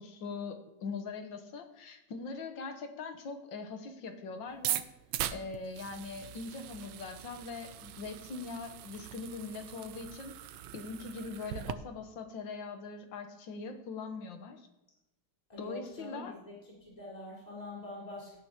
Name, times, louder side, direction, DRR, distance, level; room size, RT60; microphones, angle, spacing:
voice 1, 0.0-4.9 5.3-10.3 10.7-14.7 15.6-16.4, left 4 dB, 80° left, 7 dB, 1.9 m, -42 dB
sound 1, 4.5-11.7, right 12 dB, 75° right, 1.2 m, -40 dB
voice 2, 15.5-16.6 16.8-18.4, left 1 dB, 20° left, -7 dB, 4.3 m, -44 dB
17.5 x 9.3 x 3.0 m, 0.94 s
omnidirectional pair, 2.0 m